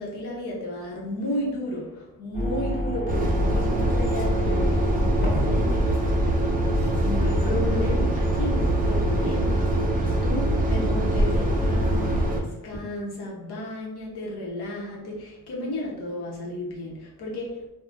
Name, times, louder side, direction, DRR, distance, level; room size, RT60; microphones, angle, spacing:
voice 1, 0.0-6.4 6.8-17.7, left 1 dB, 80° left, -3 dB, 1.0 m, -33 dB
sound 1, 2.3-12.3, left 1 dB, 35° left, 1.4 m, -28 dB
sound 2, 3.1-12.4, right 1 dB, 25° right, 0.4 m, -24 dB
3.6 x 2.3 x 2.5 m, 1.0 s
cardioid pair, 115°, 38 cm